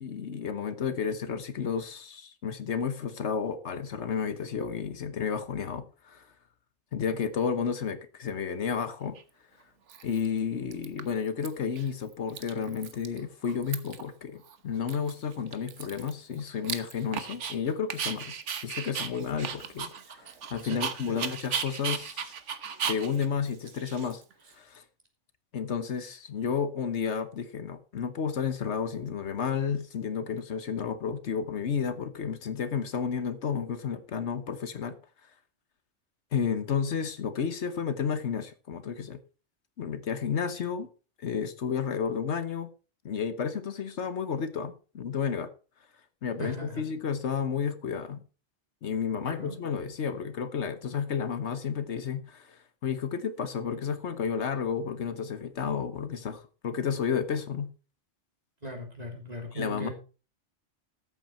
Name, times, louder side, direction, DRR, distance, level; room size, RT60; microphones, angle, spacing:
voice 1, 0.0-6.3 6.9-9.2 10.0-18.3 18.6-22.3 22.9-24.2 24.5-24.8 25.5-35.0 36.3-39.2 39.8-40.9 41.2-42.7 43.0-45.5 46.2-48.2 48.8-57.7 59.5-59.9, left 6 dB, 70° left, 1.3 m, -32 dB
Dog, 9.2-9.3 9.9-10.4 10.7-11.5 11.8-11.9 12.1-13.2 13.4-14.1 14.5-14.6 14.9-17.6 17.9-24.5, right 7 dB, 85° right, 1.4 m, -36 dB
voice 2, 20.6-21.2 46.4-46.8 49.3-49.6 58.6-59.9, right 1 dB, 35° right, 3.2 m, -38 dB
13.5 x 8.0 x 4.3 m
omnidirectional pair, 1.2 m